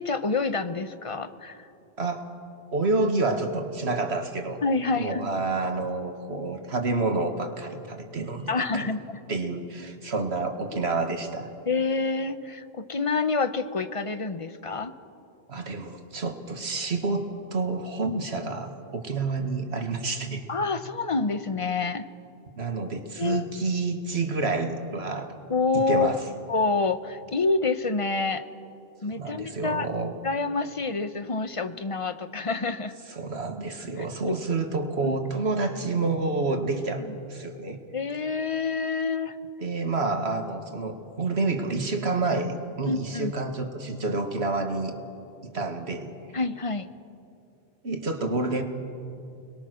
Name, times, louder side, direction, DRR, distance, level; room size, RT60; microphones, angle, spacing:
voice 1, 0.0-1.7 4.6-5.3 8.5-9.2 11.7-14.9 20.5-22.1 23.2-23.4 25.5-26.2 26.5-28.4 29.0-29.9 30.2-32.9 34.0-34.4 35.0-35.1 37.1-37.2 37.9-39.4 42.8-43.3 46.3-46.9, left 4 dB, 35° left, 10 dB, 0.9 m, -27 dB
voice 2, 2.7-4.6 5.0-8.9 9.3-11.5 15.5-17.3 17.5-20.4 22.6-25.3 25.7-26.2 29.1-30.1 33.1-37.0 37.3-37.8 39.6-44.9 45.4-46.1 47.8-48.6, right 3 dB, 90° right, 5 dB, 2.1 m, -28 dB
29.5 x 21.5 x 6.4 m, 2.6 s
omnidirectional pair, 1.1 m